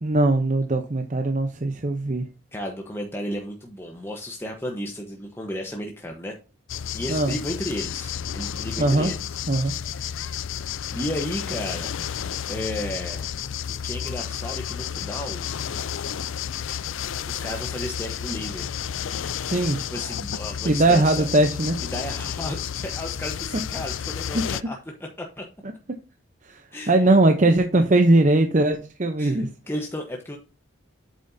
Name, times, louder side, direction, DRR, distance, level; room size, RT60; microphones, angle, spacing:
voice 1, 0.0-2.2 7.1-7.4 8.8-9.1 9.5-9.7 19.4-19.8 20.6-21.8 26.5-26.6 26.9-29.5, right 2 dB, 40° right, 0.7 m, -20 dB
voice 2, 2.5-6.4 6.9-10.3 10.9-12.0 12.5-13.3 13.8-15.4 17.3-18.8 19.9-21.3 21.9-24.8 25.2-25.4 26.7-27.1 29.2-30.4, left 1 dB, 10° left, 1.0 m, -33 dB
sound 1, 6.7-24.6, left 9 dB, 70° left, 0.4 m, -31 dB
8.6 x 7.5 x 2.7 m
head